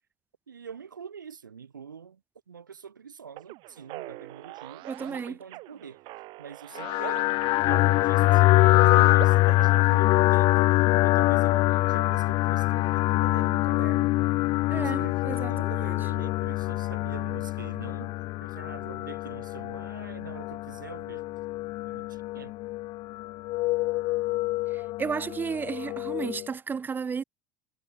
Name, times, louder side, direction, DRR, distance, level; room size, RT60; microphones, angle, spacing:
voice 1, 0.5-2.2 2.5-6.0 6.4-14.1 14.7-18.1 18.4-21.2 21.8-22.5, right 7 dB, 80° right, 1.4 m, -45 dB
sound 1, 3.4-9.9, right 22 dB, 50° right, 4.3 m, -42 dB
voice 2, 4.9-5.4 14.7-16.0 24.7-27.2, right 6 dB, 20° right, 0.4 m, -33 dB
sound 2, 6.8-26.5, left 19 dB, 45° left, 0.6 m, -24 dB
figure-of-eight pair, 70°, 10 cm